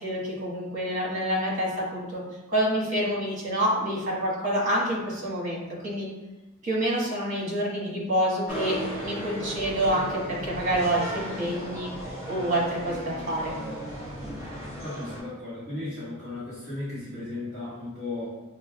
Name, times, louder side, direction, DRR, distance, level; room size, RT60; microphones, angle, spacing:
voice 1, 0.0-2.2 2.5-6.1 6.6-11.9 12.3-13.5, right 1 dB, 35° right, -5 dB, 1.2 m, -27 dB
sound 1, 8.5-15.2, equal, 15° right, 1.1 m, -36 dB
voice 2, 14.8-18.3, left 2 dB, 15° left, -16 dB, 1.4 m, -35 dB
6.2 x 2.1 x 2.2 m, 1.1 s
head